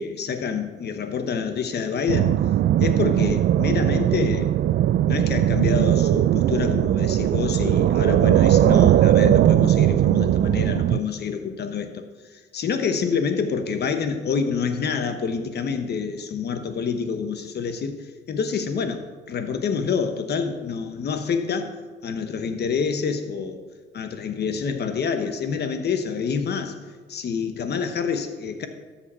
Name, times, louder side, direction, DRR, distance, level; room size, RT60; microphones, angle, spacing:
voice 1, 0.0-2.4 2.8-4.5 5.1-12.0 12.3-18.0 18.3-21.7 22.0-23.6 23.9-26.7 27.1-28.7, left 6 dB, 55° left, 8 dB, 1.1 m, -27 dB
sound 1, 2.1-11.0, right 12 dB, 60° right, 0.4 m, -19 dB
13.0 x 7.2 x 4.3 m, 1.4 s
cardioid pair, 90°, 20 cm